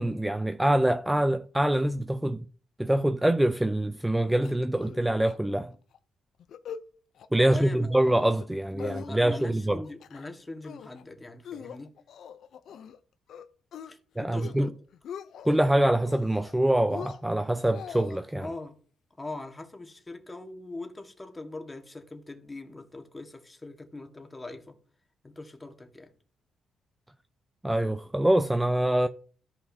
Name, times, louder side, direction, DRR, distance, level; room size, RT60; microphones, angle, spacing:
voice 1, 0.0-2.4 2.8-5.7 7.3-9.8 14.2-14.7 15.5-18.5 27.6-29.1, right 1 dB, 5° right, 0.4 m, -25 dB
sound 1, 4.4-5.0 5.3-5.4 5.7-6.0 6.4-6.8 7.2-7.6 8.0-8.5 8.8-9.5 9.8-10.3 10.6-11.0 11.4-13.0 13.3-13.9 14.3-14.7 14.9-15.6 16.0-16.5 16.9-18.2, left 8 dB, 70° left, 0.5 m, -43 dB
voice 2, 7.4-8.1 8.7-11.9 13.9-14.7 18.4-18.8 19.2-24.7 25.2-26.1, left 2 dB, 20° left, 1.5 m, -41 dB
13.5 x 5.5 x 2.7 m
cardioid pair, 90°, 0 cm